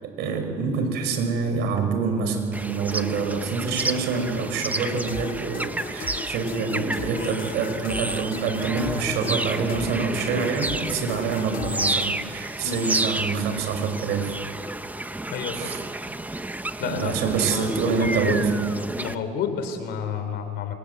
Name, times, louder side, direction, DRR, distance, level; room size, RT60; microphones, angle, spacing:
voice 1, 0.0-14.4 15.5-15.8 16.8-18.6, right 5 dB, 85° right, 6 dB, 5.4 m, -26 dB
sound 1, 2.5-19.1, right 2 dB, 10° right, 1.1 m, -31 dB
sound 2, 4.7-12.1, left 8 dB, 55° left, 2.0 m, -38 dB
voice 2, 15.3-15.7 16.8-18.4 19.0-20.7, left 7 dB, 80° left, 8 dB, 3.9 m, -31 dB
27.5 x 26.5 x 8.2 m, 2.4 s
cardioid pair, 110°, 17 cm